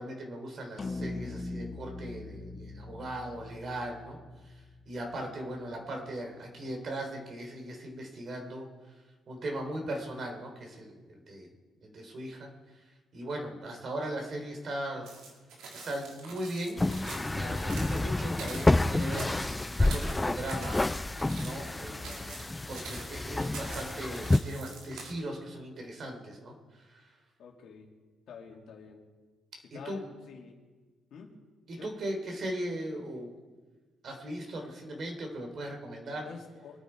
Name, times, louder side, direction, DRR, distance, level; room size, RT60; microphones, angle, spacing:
voice 1, 0.0-4.2 4.9-8.7 9.3-10.9 11.3-11.5 11.8-12.5 13.1-15.1 15.7-19.4 19.8-20.8 21.4-22.3 22.7-26.5 26.9-27.0 29.7-30.0 31.7-33.3 34.0-36.3, right 1 dB, 55° right, 2 dB, 3.8 m, -38 dB
sound 1, 0.8-5.3, left 2 dB, 30° left, 1.3 m, -41 dB
voice 2, 5.1-5.6 27.4-27.9 28.3-29.0 29.7-30.6 31.1-31.3 31.8-31.9 36.2-36.8, left 6 dB, 70° left, 0 dB, 2.7 m, -48 dB
sound 2, 15.1-25.1, right 3 dB, 85° right, 3.0 m, -46 dB
sound 3, 16.8-24.4, left 2 dB, 15° left, 0.4 m, -29 dB
24.0 x 9.5 x 4.7 m, 1.3 s
cardioid pair, 90°, 0 cm